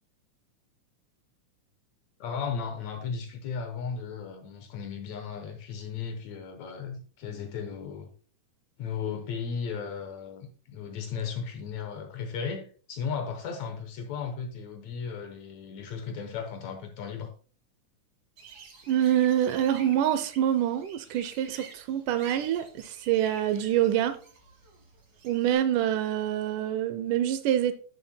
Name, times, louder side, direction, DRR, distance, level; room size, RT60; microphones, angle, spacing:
voice 1, 2.2-8.1 8.8-17.3, left 6 dB, 70° left, 2.0 m, -35 dB
sound 1, 18.4-25.5, right 5 dB, 45° right, 1.3 m, -50 dB
voice 2, 18.9-24.2 25.2-27.7, right 11 dB, 80° right, 2.1 m, -26 dB
11.0 x 6.8 x 2.2 m
omnidirectional pair, 3.8 m